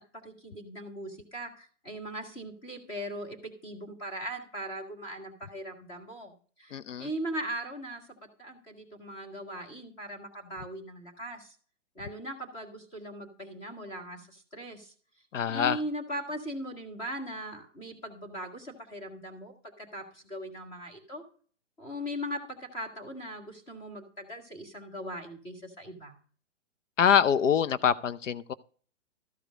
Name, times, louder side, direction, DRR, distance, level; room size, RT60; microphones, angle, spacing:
voice 1, 0.2-8.1 8.4-11.6 11.9-14.9 15.5-21.2 21.8-26.2, equal, 15° left, 1 dB, 1.7 m, -39 dB
voice 2, 6.7-7.0 15.3-15.8 27.0-28.5, left 8 dB, 80° left, 15 dB, 0.7 m, -25 dB
14.0 x 5.0 x 6.2 m, 0.42 s
hypercardioid pair, 170°, 37 cm